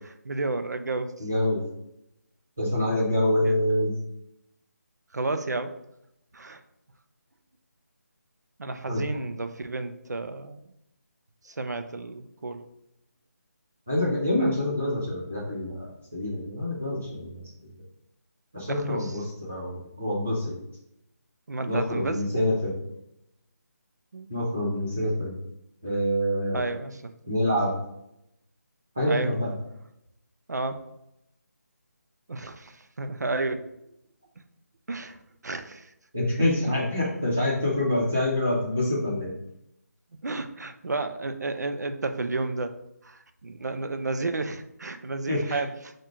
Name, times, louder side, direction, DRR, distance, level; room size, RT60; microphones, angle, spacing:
voice 1, 0.2-1.2 3.4-3.6 5.1-5.8 6.3-6.6 8.6-10.6 11.4-12.6 18.7-19.2 21.5-22.2 24.1-24.3 26.5-27.1 29.0-29.3 30.5-30.8 32.3-33.7 34.9-35.2 35.4-35.9 40.2-45.9, right 3 dB, 75° right, 8 dB, 0.6 m, -32 dB
voice 2, 1.2-1.6 2.6-4.0 8.9-9.0 13.9-17.7 18.5-20.5 21.7-22.7 24.3-25.3 25.8-26.6 27.3-27.7 29.0-29.5 36.1-39.3 45.3-45.6, left 1 dB, 5° right, -7 dB, 0.4 m, -26 dB
4.4 x 2.5 x 4.8 m, 0.82 s
figure-of-eight pair, 180°, 9 cm